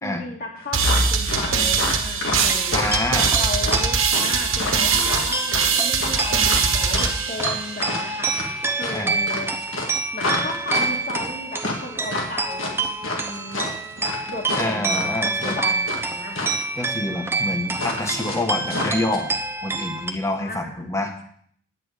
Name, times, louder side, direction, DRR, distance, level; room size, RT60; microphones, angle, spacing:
voice 1, 0.0-2.8 3.4-8.3 8.8-9.5 10.1-13.7 14.3-15.1 15.4-16.5 20.4-20.9, left 2 dB, 45° left, 1 dB, 1.9 m, -34 dB
sound 1, 0.7-8.2, right 5 dB, 90° right, 1.3 m, -22 dB
sound 2, 0.8-16.0 16.3-16.6 17.8-19.2, left 2 dB, 85° left, 2.2 m, -29 dB
sound 3, 2.4-20.1, right 3 dB, 10° right, 0.6 m, -28 dB
voice 2, 2.7-3.3 8.9-9.2 14.5-15.6 16.7-19.3 19.6-21.1, left 1 dB, 15° left, 4 dB, 1.2 m, -27 dB
10.0 x 8.7 x 4.9 m, 0.62 s
head